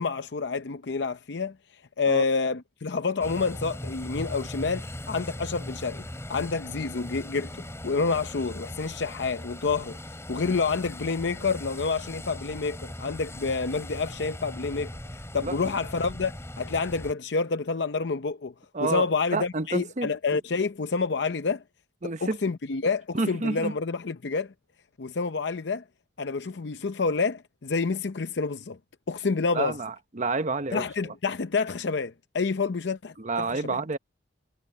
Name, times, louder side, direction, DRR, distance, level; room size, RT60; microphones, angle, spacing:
voice 1, 0.0-1.6 2.0-14.9 15.3-18.5 18.8-21.6 22.0-24.5 25.0-25.8 26.2-28.8 29.1-29.8 30.7-33.8, left 4 dB, 65° left, 0.6 m, -28 dB
sound 1, 3.2-17.1, left 1 dB, 15° left, 3.9 m, -39 dB
voice 2, 18.7-20.1 22.0-22.4 23.1-23.7 29.5-30.8 33.2-34.0, right 3 dB, 40° right, 0.9 m, -29 dB
head